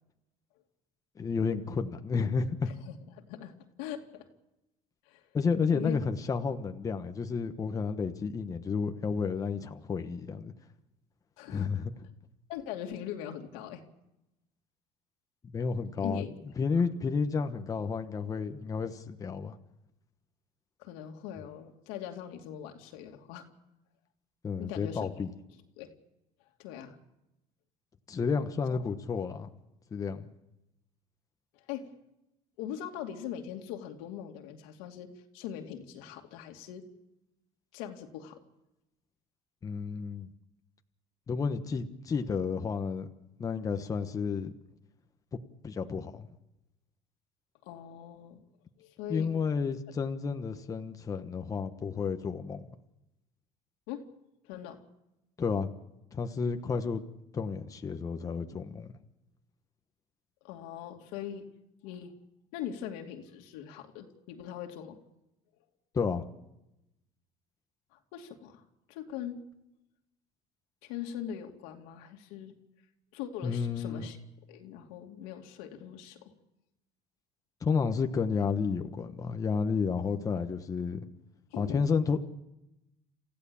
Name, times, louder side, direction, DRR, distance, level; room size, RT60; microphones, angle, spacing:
voice 1, 1.2-2.7 5.3-10.5 11.5-11.9 15.5-16.2 16.6-19.6 24.4-25.3 28.1-29.5 29.9-30.3 39.6-40.3 41.3-43.1 43.4-44.5 45.6-46.3 49.1-52.6 55.4-55.7 56.1-57.0 57.3-58.9 65.9-66.2 73.4-74.0 77.6-81.1 81.6-82.2, left 5 dB, 25° left, 6 dB, 1.2 m, -31 dB
voice 2, 2.7-4.3 5.0-5.2 5.7-6.0 11.4-11.8 12.5-13.8 16.0-16.3 16.7-16.9 20.8-23.5 24.6-25.1 25.8-25.9 26.6-27.0 28.5-28.8 31.5-31.9 32.6-35.1 35.3-36.8 37.7-38.4 47.6-48.4 48.8-49.3 53.9-54.1 54.4-54.8 60.4-61.5 61.8-62.1 62.5-65.0 67.9-68.6 68.9-69.4 70.8-72.5 73.1-74.2 74.5-76.3 81.5-81.9, left 9 dB, 85° left, 3 dB, 2.6 m, -41 dB
28.0 x 15.5 x 7.2 m, 0.92 s
cardioid pair, 130°, 14 cm